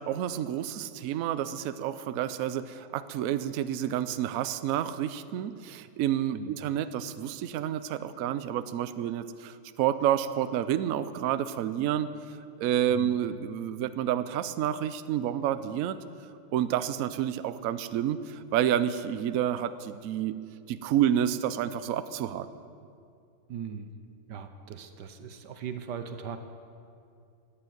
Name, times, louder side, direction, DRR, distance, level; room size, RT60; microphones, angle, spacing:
voice 1, 0.0-12.1 12.6-16.0 16.5-20.3 20.7-22.5, right 10 dB, 90° right, 12 dB, 0.7 m, -29 dB
voice 2, 12.9-13.2 23.5-23.9 24.3-26.4, right 7 dB, 65° right, 8 dB, 1.3 m, -39 dB
14.0 x 8.9 x 9.2 m, 2.4 s
omnidirectional pair, 2.2 m